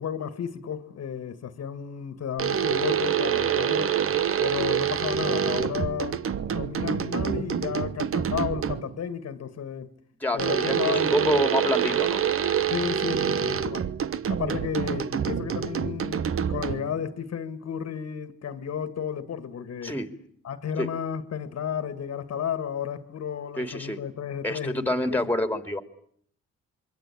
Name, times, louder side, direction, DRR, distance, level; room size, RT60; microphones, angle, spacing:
voice 1, 0.0-4.0 4.4-9.9 10.3-11.5 12.7-13.9 14.3-20.0 20.4-25.3, left 8 dB, 55° left, 1.9 m, -33 dB
sound 1, 2.4-9.0 10.4-17.0, right 8 dB, 45° right, 1.0 m, -26 dB
voice 2, 10.2-12.2 14.5-14.6 19.8-20.1 20.8-20.9 23.6-24.0 24.4-25.8, left 1 dB, 5° left, 2.7 m, -27 dB
26.5 x 23.0 x 8.7 m
cardioid pair, 90°, 30 cm